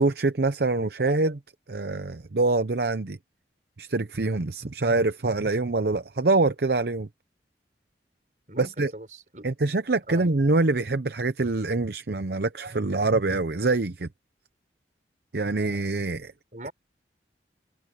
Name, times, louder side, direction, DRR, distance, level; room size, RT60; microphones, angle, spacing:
voice 1, 0.0-1.4 1.7-3.2 3.8-7.1 8.6-8.9 9.4-14.1 15.3-16.3, right 3 dB, 65° right, 0.8 m, -25 dB
voice 2, 8.5-9.5 10.1-10.3 16.5-16.7, right 1 dB, 45° right, 5.7 m, -40 dB
head